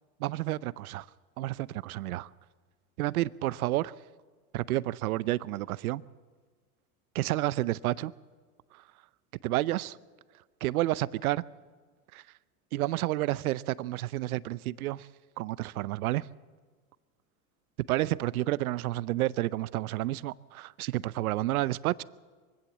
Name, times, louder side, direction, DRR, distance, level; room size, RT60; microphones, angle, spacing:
voice 1, 0.2-1.1 1.4-2.3 3.0-3.9 4.5-6.0 7.1-8.1 9.4-10.0 10.6-11.4 12.1-12.2 12.7-15.1 15.4-16.3 17.9-22.0, right 16 dB, 85° right, 0.7 m, -30 dB
23.0 x 16.0 x 7.4 m
hypercardioid pair, 100°, 43 cm